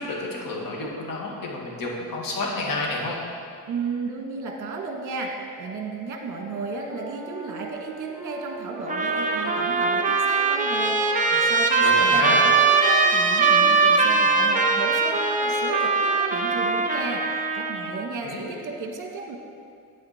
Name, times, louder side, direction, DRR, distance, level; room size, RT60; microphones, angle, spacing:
voice 1, 0.0-3.2 11.8-12.5 18.2-18.5, left 2 dB, 55° left, -2 dB, 2.1 m, -29 dB
voice 2, 3.7-19.4, right 3 dB, 50° right, 2 dB, 1.5 m, -33 dB
sound 1, 6.3-15.0, right 2 dB, ahead, 2.0 m, -40 dB
Trumpet, 8.9-18.0, right 4 dB, 20° right, 0.7 m, -21 dB
9.3 x 9.2 x 4.3 m, 2.3 s
cardioid pair, 135°, 40 cm